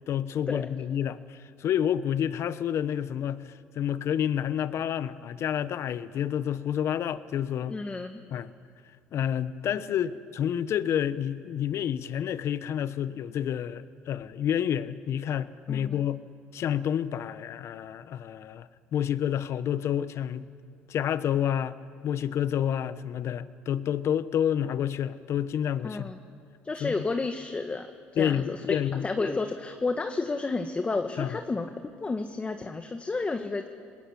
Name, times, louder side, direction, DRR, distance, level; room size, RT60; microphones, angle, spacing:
voice 1, 0.1-7.8 8.3-8.5 9.1-16.2 16.5-20.5 20.9-21.8 22.0-26.1 26.8-26.9 28.2-29.1 31.2-31.4, left 9 dB, 55° left, 14 dB, 1.1 m, -29 dB
voice 2, 7.7-8.2 15.7-16.0 25.8-26.2 26.6-27.9 28.1-28.6 29.0-31.7 32.0-33.7, left 3 dB, 25° left, 6 dB, 1.5 m, -31 dB
28.0 x 20.0 x 8.5 m, 2.2 s
supercardioid pair, 80°, 5 cm